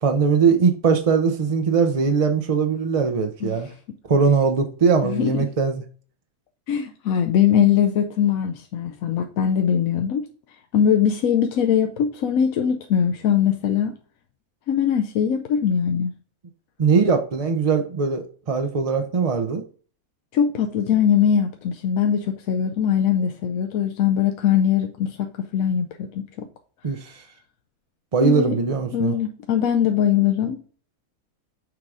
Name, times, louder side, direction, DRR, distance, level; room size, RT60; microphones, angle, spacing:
voice 1, 0.0-3.7 4.1-5.8 16.8-19.6 26.8-27.1 28.1-29.2, right 5 dB, 45° right, 0.4 m, -20 dB
voice 2, 5.0-5.5 6.7-10.3 10.7-13.9 14.7-16.1 20.3-26.5 28.2-28.6 28.9-30.6, left 8 dB, 75° left, 1.0 m, -21 dB
6.5 x 3.7 x 4.8 m
omnidirectional pair, 1.5 m